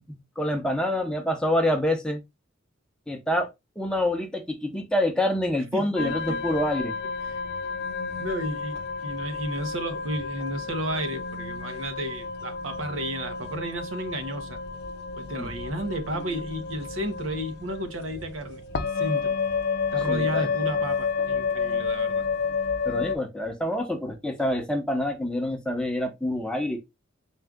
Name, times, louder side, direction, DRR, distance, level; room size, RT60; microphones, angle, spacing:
voice 1, 0.0-2.2 3.1-3.5 3.8-6.9 15.4-15.5 20.1-20.5 22.9-26.8, left 1 dB, 5° left, 0.7 m, -27 dB
voice 2, 5.7-6.5 7.3-7.4 8.2-14.6 15.2-19.4 19.9-22.2, equal, 75° right, 0.9 m, -32 dB
sound 1, 5.9-23.2, left 5 dB, 55° left, 0.5 m, -30 dB
4.4 x 2.4 x 3.5 m
head